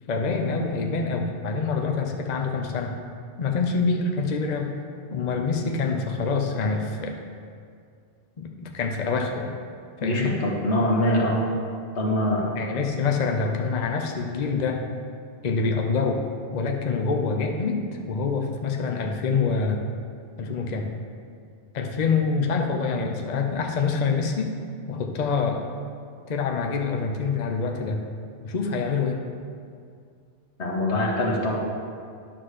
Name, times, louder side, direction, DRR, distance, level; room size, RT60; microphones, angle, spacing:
voice 1, 0.1-2.9 3.4-4.7 5.1-7.2 8.4-9.6 10.0-10.4 12.6-14.8 15.4-16.2 16.5-19.8 20.4-20.9 21.7-24.5 24.9-25.6 26.3-28.0 28.4-29.2, left 4 dB, 45° left, 2 dB, 0.7 m, -26 dB
voice 2, 10.0-11.4 11.9-12.5 30.6-31.6, left 1 dB, 90° left, -2 dB, 1.6 m, -23 dB
9.7 x 3.9 x 6.5 m, 2.3 s
omnidirectional pair, 1.1 m